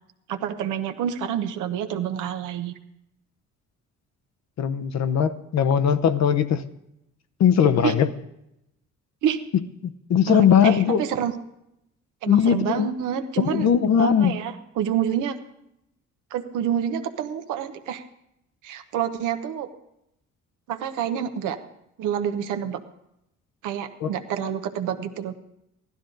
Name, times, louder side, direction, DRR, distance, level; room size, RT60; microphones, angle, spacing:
voice 1, 0.3-2.7 7.8-7.9 9.2-9.4 10.3-11.3 12.2-13.7 14.0-15.4 16.3-18.0 18.6-19.7 20.7-21.6 22.0-22.8 23.6-25.3, right 9 dB, 90° right, 8 dB, 0.9 m, -28 dB
voice 2, 4.6-6.6 7.4-8.1 9.8-11.1 12.3-12.9 13.4-14.4 24.0-24.1, left 8 dB, 60° left, 10 dB, 0.8 m, -20 dB
15.0 x 12.0 x 3.9 m, 0.83 s
cardioid pair, 90°, 30 cm